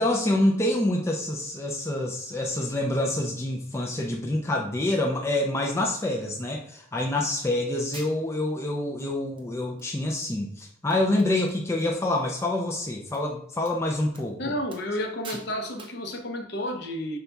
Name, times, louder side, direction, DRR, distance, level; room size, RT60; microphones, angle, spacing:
voice 1, 0.0-14.4, left 1 dB, 15° left, 0 dB, 0.4 m, -27 dB
sound 1, 7.4-7.5 7.9-8.5 9.0-9.1 9.4-9.9 10.2-10.3 10.6-10.7 10.9-11.9 12.2-12.5 13.1-13.2 13.6-13.8 14.1-14.3 14.7-15.0 15.2-15.5 15.8-16.0, right 3 dB, 25° right, 0.6 m, -46 dB
voice 2, 14.4-17.2, left 1 dB, 55° left, 4 dB, 0.7 m, -31 dB
5.6 x 3.9 x 2.3 m, 0.72 s
head